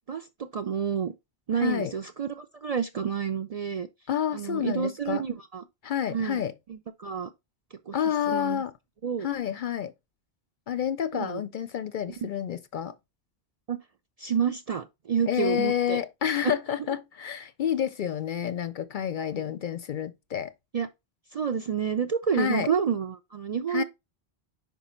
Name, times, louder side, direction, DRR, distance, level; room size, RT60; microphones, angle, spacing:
voice 1, 0.5-1.1 1.5-3.9 4.3-5.6 6.1-6.4 6.7-7.3 7.7-8.0 8.3-8.6 9.0-9.3 11.1-11.4 12.2-12.3 13.7-13.8 14.2-16.0 20.7-20.9 21.3-23.8, right 7 dB, 50° right, 0.4 m, -29 dB
voice 2, 1.6-1.9 4.1-5.2 5.8-6.5 7.9-8.7 9.2-9.9 10.7-12.9 15.3-20.5 22.3-22.7 23.7-23.8, left 9 dB, 60° left, 0.6 m, -29 dB
5.3 x 4.8 x 4.3 m
omnidirectional pair, 1.1 m